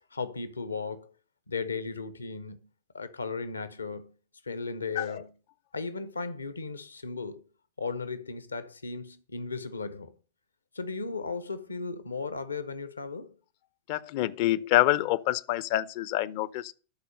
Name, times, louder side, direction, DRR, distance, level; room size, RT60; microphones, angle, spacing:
voice 1, 0.1-1.1 1.5-2.6 2.9-4.1 4.4-5.3 5.7-7.4 7.8-10.1 10.7-13.4, left 4 dB, 75° left, 0.8 m, -36 dB
voice 2, 13.9-16.7, left 15 dB, 45° left, 0.5 m, -27 dB
12.0 x 4.3 x 6.5 m
figure-of-eight pair, 90°, 0 cm